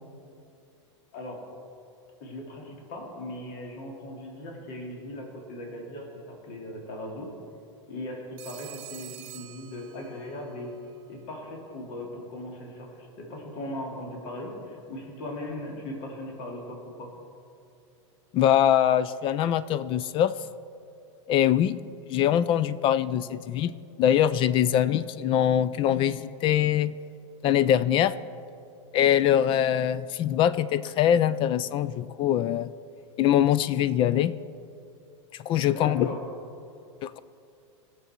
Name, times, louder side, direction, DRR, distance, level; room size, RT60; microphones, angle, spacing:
voice 1, 1.1-1.4 2.2-7.3 7.9-10.7 11.1-17.1 35.7-36.3, left 1 dB, 55° left, 0 dB, 2.6 m, -38 dB
Telephone, 8.4-10.4, right 16 dB, 55° right, 0.9 m, -45 dB
voice 2, 18.3-20.4 21.3-26.9 27.4-28.2 28.9-32.7 33.2-34.4 35.4-36.2 37.0-37.2, left 10 dB, 30° left, 17 dB, 0.4 m, -23 dB
18.5 x 7.0 x 4.4 m, 2.6 s
supercardioid pair, 125°, 16 cm